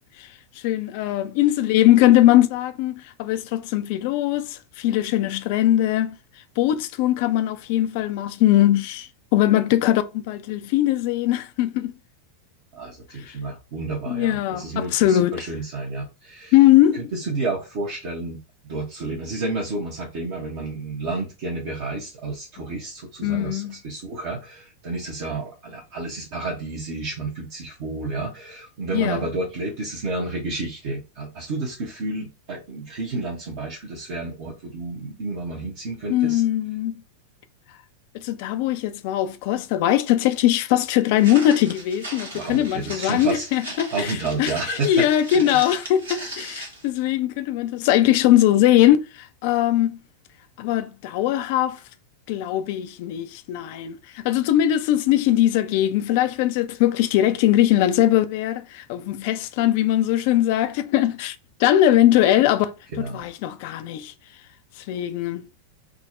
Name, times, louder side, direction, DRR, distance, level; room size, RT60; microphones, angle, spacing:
voice 1, 0.6-6.2 6.6-11.9 13.3-13.4 14.1-15.4 16.5-17.1 23.2-23.8 28.9-29.3 36.1-37.0 38.1-49.9 50.6-51.8 52.3-64.1 64.9-65.4, left 13 dB, 50° left, 0.3 m, -20 dB
voice 2, 12.7-16.5 16.9-18.4 18.6-36.4 42.3-43.5 43.9-45.1 45.3-45.6 62.9-63.2, right 3 dB, 50° right, 0.7 m, -30 dB
Walk footsteps, 41.2-46.9, right 1 dB, 70° right, 1.0 m, -37 dB
3.6 x 2.0 x 2.5 m
figure-of-eight pair, 90°, 0 cm